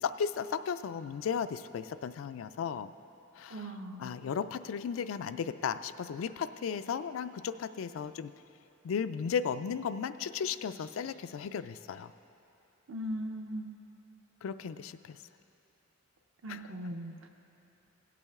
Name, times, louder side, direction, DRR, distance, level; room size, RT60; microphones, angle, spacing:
voice 1, 0.0-2.9 3.4-8.3 8.8-12.1 14.4-15.2 16.5-16.7, left 7 dB, 80° left, 12 dB, 0.3 m, -35 dB
voice 2, 3.5-4.1 12.9-13.7 16.4-17.3, equal, 70° right, 4 dB, 0.9 m, -39 dB
17.5 x 8.3 x 3.6 m, 2.9 s
head